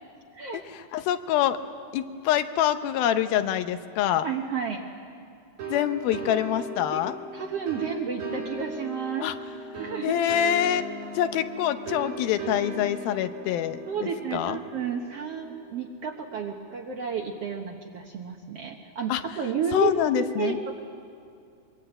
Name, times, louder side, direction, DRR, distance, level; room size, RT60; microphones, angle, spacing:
voice 1, 0.7-1.6 1.9-4.3 5.7-7.1 9.2-9.3 10.0-14.6 19.1-19.2 19.7-20.6, left 10 dB, 85° left, 10 dB, 2.7 m, -26 dB
voice 2, 4.2-4.8 6.9-7.0 7.3-9.3 9.8-10.2 13.8-20.8, right 6 dB, 65° right, 2 dB, 1.6 m, -31 dB
sound 1, 5.6-16.1, right 1 dB, 85° right, 6.3 m, -38 dB
23.5 x 23.0 x 8.9 m, 2.4 s
omnidirectional pair, 4.2 m